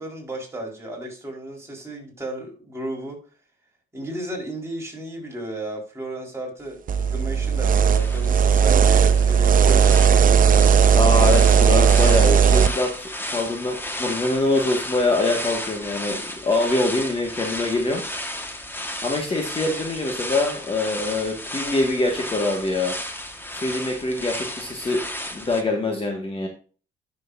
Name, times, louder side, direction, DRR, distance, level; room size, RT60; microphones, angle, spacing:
voice 1, 0.0-3.2 3.9-10.5, right 1 dB, 15° right, -2 dB, 4.5 m, -34 dB
sound 1, 6.9-12.7, right 7 dB, 45° right, 0.6 m, -16 dB
sound 2, 7.9-25.6, left 1 dB, 10° left, 1.6 m, -34 dB
voice 2, 10.9-18.0 19.0-23.0 23.5-25.0 25.3-26.5, left 2 dB, 25° left, 1 dB, 1.8 m, -24 dB
11.0 x 6.9 x 2.7 m, 0.38 s
cardioid pair, 90°, 20 cm